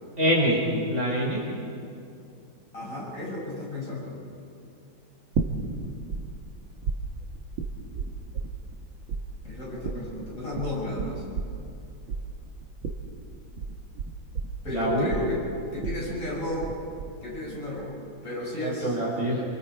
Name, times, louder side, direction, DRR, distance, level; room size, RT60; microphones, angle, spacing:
voice 1, 0.2-0.6 0.9-1.5 14.7-15.1 18.6-19.4, equal, 35° right, -5 dB, 6.0 m, -25 dB
voice 2, 2.7-4.2 9.4-11.2 14.6-15.4 15.7-16.7 17.2-17.9 18.2-18.9, left 1 dB, 40° left, -6 dB, 7.7 m, -33 dB
sound 1, 5.3-6.2 6.5-8.8 9.1-16.7 17.0-17.5, right 5 dB, 90° right, 2.5 m, -32 dB
29.0 x 26.0 x 4.7 m, 2.5 s
omnidirectional pair, 2.1 m